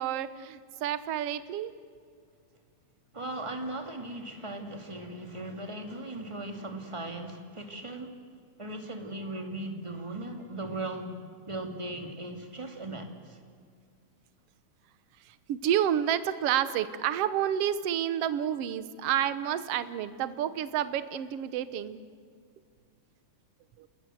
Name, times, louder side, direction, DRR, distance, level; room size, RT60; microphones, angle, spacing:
voice 1, 0.0-1.7 15.3-22.0 23.8-23.9, right 10 dB, 65° right, 13 dB, 1.8 m, -29 dB
voice 2, 3.1-8.1 8.6-11.1 11.5-13.4, right 2 dB, 10° right, 4 dB, 2.1 m, -38 dB
29.0 x 20.5 x 7.9 m, 2.1 s
omnidirectional pair, 3.5 m